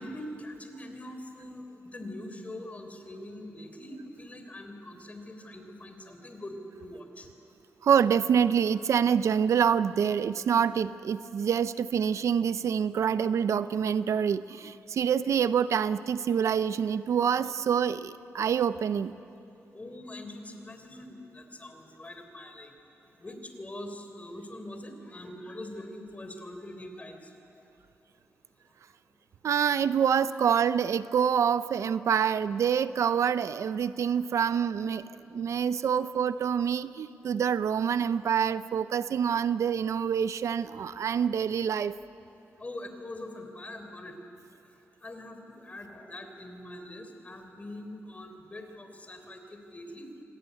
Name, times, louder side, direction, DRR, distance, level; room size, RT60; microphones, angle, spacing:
voice 1, 0.0-7.3 19.7-22.7 23.2-27.2 42.6-44.1 45.0-50.1, left 1 dB, 30° left, 6 dB, 3.8 m, -43 dB
voice 2, 7.8-19.2 29.4-35.0 35.3-41.9, right 8 dB, 75° right, 14 dB, 0.6 m, -26 dB
26.5 x 19.0 x 9.6 m, 2.7 s
cardioid pair, 90°, 5 cm